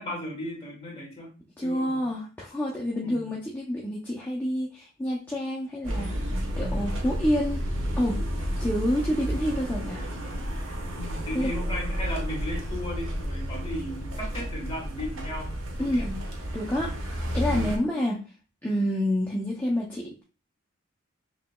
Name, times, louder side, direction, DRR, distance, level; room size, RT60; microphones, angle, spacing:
voice 1, 0.0-1.3 1.6-2.0 3.0-3.3 10.9-15.5 15.8-16.1 17.3-17.7, left 1 dB, 25° left, -2 dB, 1.4 m, -36 dB
voice 2, 1.6-7.6 8.0-8.2 8.6-10.0 11.3-11.5 15.8-16.2 16.5-18.2 18.6-20.2, equal, 10° left, -4 dB, 0.4 m, -28 dB
sound 1, 5.8-17.8, equal, 75° right, 1.0 m, -31 dB
5.8 x 2.8 x 2.2 m, 0.35 s
head